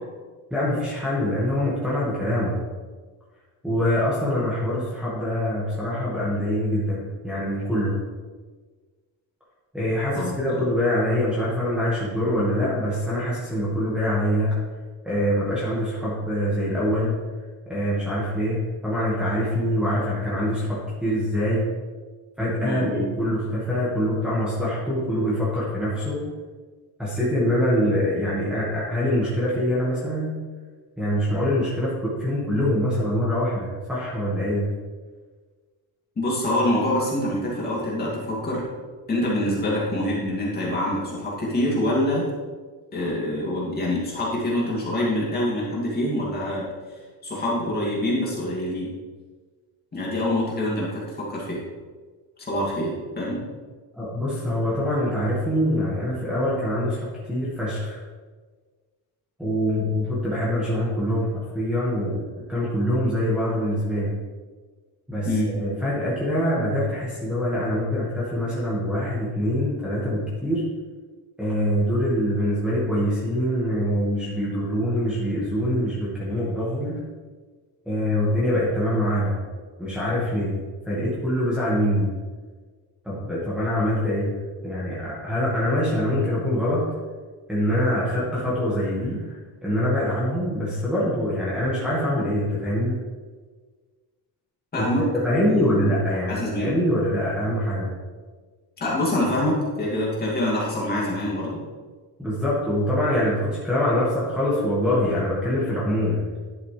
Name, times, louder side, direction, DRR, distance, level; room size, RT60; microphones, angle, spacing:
voice 1, 0.5-2.6 3.6-8.0 9.7-14.6 15.0-17.2 17.7-21.7 22.4-26.3 27.0-30.4 31.0-34.7 53.9-58.0 59.4-64.2 65.1-70.7 71.4-77.0 77.9-79.4 79.8-82.2 83.0-84.3 84.6-86.8 87.5-93.0 94.8-97.9 102.2-106.2, equal, 5° right, -10 dB, 1.7 m, -24 dB
voice 2, 10.2-10.6 22.6-23.0 36.2-38.7 39.1-42.2 42.9-46.6 47.2-48.9 49.9-51.6 52.4-53.4 65.2-65.5 94.7-95.0 95.5-95.9 96.3-96.7 98.8-101.6, left 1 dB, 25° left, -5 dB, 2.5 m, -25 dB
11.5 x 6.6 x 3.3 m, 1.5 s
cardioid pair, 170°, 38 cm